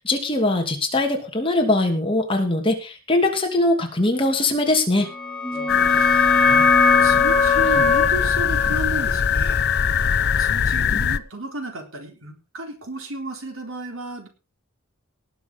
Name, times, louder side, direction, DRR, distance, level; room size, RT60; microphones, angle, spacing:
voice 1, 0.0-5.1, left 2 dB, 25° left, 3 dB, 2.7 m, -21 dB
sound 1, 5.1-10.5, left 4 dB, 5° left, 2.2 m, -22 dB
voice 2, 5.5-6.7 7.0-9.7 10.4-14.3, right 2 dB, 70° right, 3 dB, 3.9 m, -33 dB
sound 2, 5.7-11.2, left 8 dB, 50° left, 0.6 m, -21 dB
19.0 x 6.6 x 5.3 m, 0.32 s
head